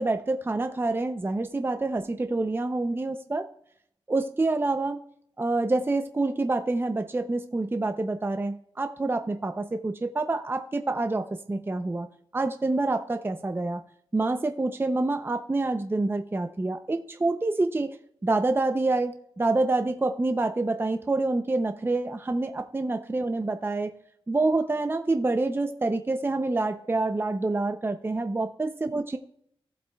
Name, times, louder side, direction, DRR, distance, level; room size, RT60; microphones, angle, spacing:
voice 1, 0.0-3.5 4.1-5.0 5.4-12.1 12.3-13.8 14.1-18.0 18.2-23.9 24.3-29.2, right 2 dB, 25° right, 7 dB, 0.6 m, -27 dB
17.0 x 7.5 x 2.3 m, 0.70 s
wide cardioid pair, 90°, 10 cm